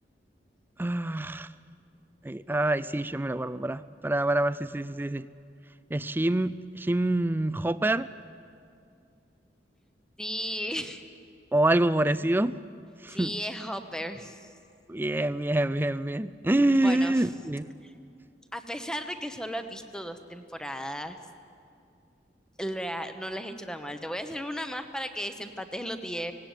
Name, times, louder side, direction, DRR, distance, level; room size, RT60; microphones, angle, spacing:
voice 1, 0.8-1.5 2.2-5.3 5.9-8.1 11.5-12.6 13.0-13.3 14.9-17.7, right 1 dB, 10° right, 15 dB, 0.4 m, -26 dB
voice 2, 10.2-11.0 13.1-14.5 16.8-17.1 17.8-17.9 18.5-21.2 22.6-26.3, equal, 5° left, 8 dB, 1.0 m, -35 dB
18.0 x 18.0 x 9.2 m, 2.4 s
head